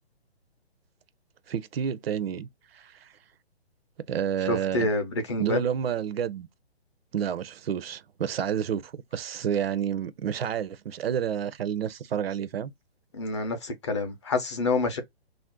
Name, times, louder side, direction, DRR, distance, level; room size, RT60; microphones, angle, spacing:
voice 1, 1.5-3.1 4.1-4.9 5.4-6.5 7.1-12.7, right 8 dB, 65° right, 0.5 m, -30 dB
voice 2, 4.5-5.6 13.1-15.0, left 2 dB, 30° left, 0.5 m, -27 dB
2.5 x 2.0 x 3.6 m
hypercardioid pair, 150°, 32 cm